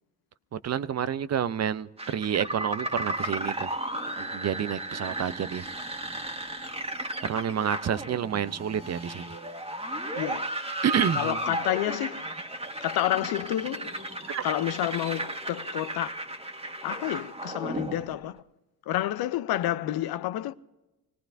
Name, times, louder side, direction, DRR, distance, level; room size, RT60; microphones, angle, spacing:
voice 1, 0.5-3.7 4.2-5.6 7.2-9.3 10.8-11.4 14.3-14.5, right 9 dB, 40° right, 0.6 m, -29 dB
sound 1, 2.0-18.3, right 1 dB, 15° right, 1.7 m, -34 dB
voice 2, 10.2-10.5 11.1-12.3 12.8-13.9 14.4-16.1 16.8-18.4 18.9-20.5, left 13 dB, 70° left, 0.7 m, -29 dB
25.5 x 18.0 x 2.6 m
supercardioid pair, 70°, 39 cm